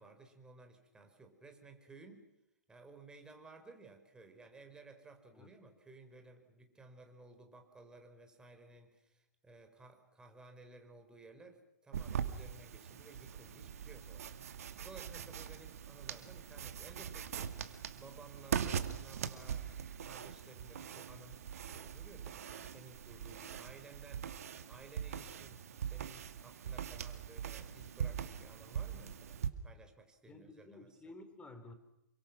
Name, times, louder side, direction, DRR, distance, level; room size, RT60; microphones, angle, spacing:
voice 1, 0.0-2.2 2.7-17.5 18.0-19.7 20.0-21.4 21.7-24.3 24.7-31.0, right 3 dB, 10° right, 5 dB, 4.7 m, -57 dB
sound 1, 11.9-29.5, right 8 dB, 60° right, 2.3 m, -42 dB
voice 2, 30.3-31.7, left 2 dB, 15° left, 9 dB, 4.0 m, -53 dB
28.0 x 24.5 x 6.1 m, 0.86 s
figure-of-eight pair, 120°, 9 cm